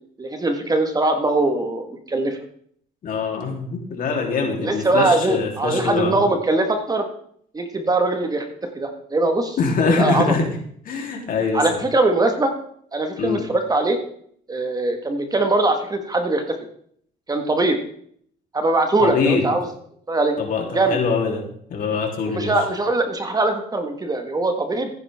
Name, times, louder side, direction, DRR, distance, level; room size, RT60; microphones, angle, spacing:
voice 1, 0.2-2.4 4.6-7.1 7.5-8.4 8.7-10.4 11.5-12.5 12.9-14.0 14.5-16.4 17.3-17.8 18.5-19.7 20.1-20.3 20.7-21.0 22.3-24.9, right 2 dB, 20° right, 6 dB, 1.7 m, -21 dB
voice 2, 3.0-6.2 9.6-10.4 10.8-11.8 13.2-13.4 19.0-19.5 20.4-21.4 21.7-22.6, left 4 dB, 55° left, 1 dB, 3.5 m, -23 dB
15.0 x 10.0 x 3.7 m, 0.64 s
cardioid pair, 110°, 17 cm